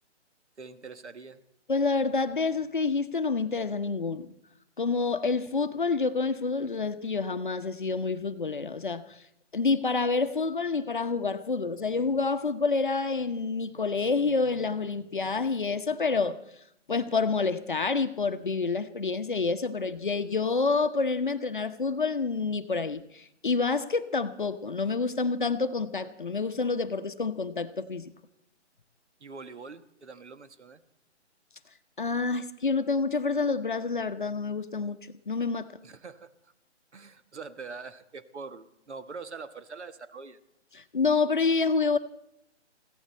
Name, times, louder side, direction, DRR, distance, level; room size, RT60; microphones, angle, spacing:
voice 1, 0.6-1.4 29.2-30.8 35.8-36.5 36.9-40.4, right 4 dB, 70° right, 1.4 m, -44 dB
voice 2, 1.7-4.3 4.8-9.2 9.5-16.4 16.9-28.1 32.0-35.0 35.3-35.7 40.7-42.0, left 4 dB, 45° left, 0.8 m, -28 dB
21.5 x 16.0 x 4.3 m
hypercardioid pair, 180°, 36 cm